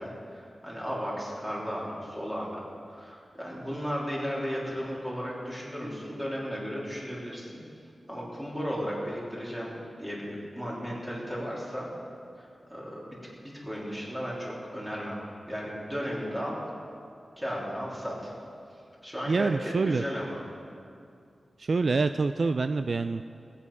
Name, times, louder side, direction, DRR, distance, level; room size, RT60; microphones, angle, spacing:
voice 1, 0.0-7.6 8.1-9.7 10.0-11.9 12.4-15.2 15.5-16.6 17.4-18.3 19.0-20.4, equal, 10° right, -5 dB, 3.7 m, -35 dB
voice 2, 19.3-20.0 21.6-23.2, right 4 dB, 55° right, 9 dB, 0.3 m, -26 dB
19.5 x 8.7 x 5.7 m, 2.5 s
wide cardioid pair, 105°, 0 cm